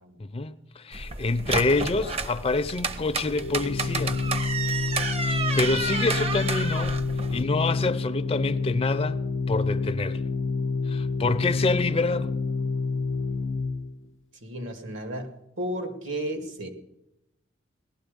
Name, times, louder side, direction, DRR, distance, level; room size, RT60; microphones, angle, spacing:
voice 1, 0.2-4.2 5.2-7.0 7.3-9.2 9.5-10.2 10.9-12.4, left 3 dB, 30° left, 0.5 m, -27 dB
sound 1, 0.9-7.4, right 4 dB, 30° right, 0.7 m, -31 dB
Organ, 3.3-14.0, left 4 dB, 85° left, 0.6 m, -28 dB
voice 2, 14.4-15.3 15.6-16.7, right 1 dB, 80° right, 2.2 m, -33 dB
18.5 x 12.0 x 5.2 m
head